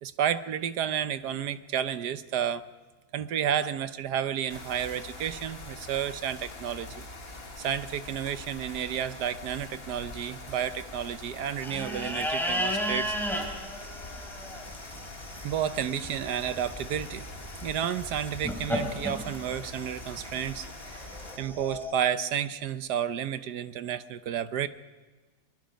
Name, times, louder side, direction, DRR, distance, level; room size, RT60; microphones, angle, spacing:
voice 1, 0.0-2.7 3.1-7.1 7.6-13.1 15.4-17.3 17.6-21.1 21.4-24.7, right 9 dB, 75° right, 12 dB, 1.4 m, -31 dB
sound 1, 4.5-21.4, left 2 dB, 35° left, 2.0 m, -44 dB
sound 2, 11.6-21.9, equal, ahead, 3.1 m, -35 dB
23.5 x 21.5 x 5.2 m, 1.3 s
omnidirectional pair, 1.8 m